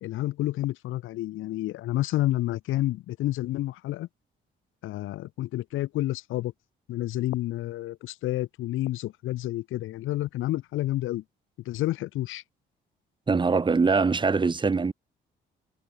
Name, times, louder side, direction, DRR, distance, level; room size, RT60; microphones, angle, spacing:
voice 1, 0.0-4.1 4.8-6.5 6.9-11.2 11.7-12.4, left 15 dB, 85° left, 1.1 m, -29 dB
voice 2, 13.3-14.9, right 4 dB, 25° right, 1.0 m, -23 dB
cardioid pair, 90°, 20 cm